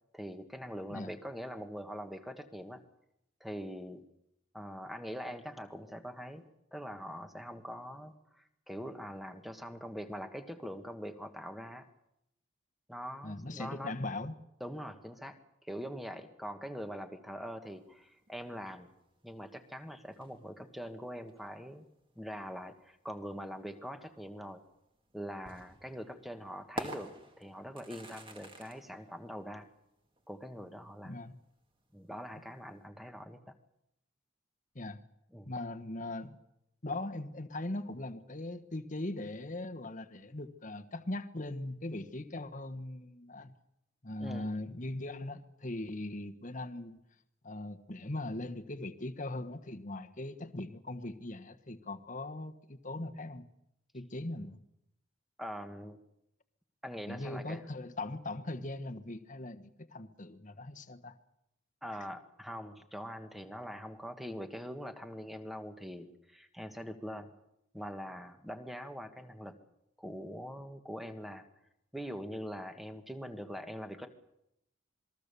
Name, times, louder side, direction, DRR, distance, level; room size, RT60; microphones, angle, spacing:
voice 1, 0.1-2.8 3.4-4.0 4.5-6.4 6.7-11.9 12.9-13.9 14.6-15.4 15.6-18.9 19.2-21.8 22.1-24.6 25.1-29.7 30.3-31.1 31.9-33.5 35.3-35.5 44.2-44.5 55.4-56.0 56.8-57.6 61.8-67.3 67.7-69.6 70.0-71.5 71.9-74.1, equal, ahead, 7 dB, 1.5 m, -43 dB
voice 2, 13.2-14.3 31.0-31.4 34.7-35.0 35.5-36.4 36.8-43.5 44.0-47.0 47.4-53.5 53.9-54.6 57.1-61.1, left 2 dB, 40° left, 8 dB, 1.3 m, -40 dB
sound 1, 17.6-32.9, right 1 dB, 25° right, 2.2 m, -50 dB
27.0 x 21.0 x 6.9 m, 0.83 s
head